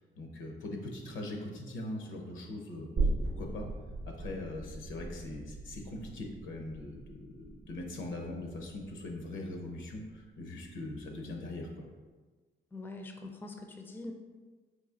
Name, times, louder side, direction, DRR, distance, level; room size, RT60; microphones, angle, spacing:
voice 1, 0.2-2.9 3.4-3.7 4.0-11.7, left 2 dB, 85° left, 2 dB, 0.8 m, -41 dB
sound 1, 3.0-10.2 10.6-10.7, right 2 dB, 40° right, 0.6 m, -38 dB
voice 2, 12.7-14.1, left 2 dB, 10° left, 4 dB, 0.4 m, -43 dB
4.0 x 2.7 x 3.7 m, 1.4 s
cardioid pair, 105°, 19 cm